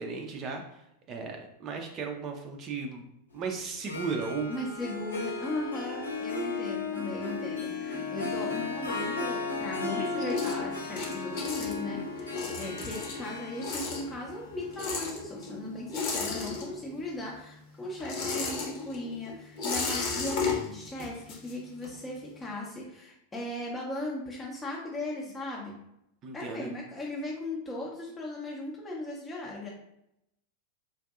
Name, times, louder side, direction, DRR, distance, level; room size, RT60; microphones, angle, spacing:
voice 1, 0.0-3.0 3.3-4.6 26.2-26.7, right 4 dB, 30° right, 2 dB, 0.4 m, -35 dB
Harp, 3.7-16.6, left 3 dB, 75° left, 0.6 m, -35 dB
voice 2, 4.5-25.8 26.3-29.7, left 1 dB, 15° left, -3 dB, 0.6 m, -37 dB
sound 1, 7.9-9.6 9.9-17.1 17.4-22.1, left 4 dB, 45° left, 0.9 m, -35 dB
3.9 x 2.5 x 2.4 m, 0.82 s
figure-of-eight pair, 90°, 0 cm